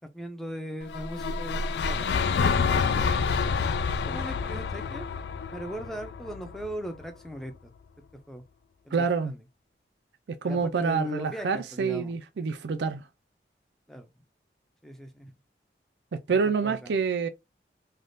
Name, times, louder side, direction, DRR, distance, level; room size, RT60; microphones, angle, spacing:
voice 1, 0.1-2.1 2.5-5.0 5.5-7.5 8.3-8.4 8.9-9.4 10.4-12.1 13.9-14.1 14.8-15.3 16.3-16.9, equal, ahead, 0.5 m, -39 dB
sound 1, 0.9-7.0, left 5 dB, 70° left, 0.3 m, -28 dB
voice 2, 8.9-9.3 10.4-13.0 16.1-17.3, right 5 dB, 80° right, 0.4 m, -27 dB
3.4 x 2.3 x 2.5 m
head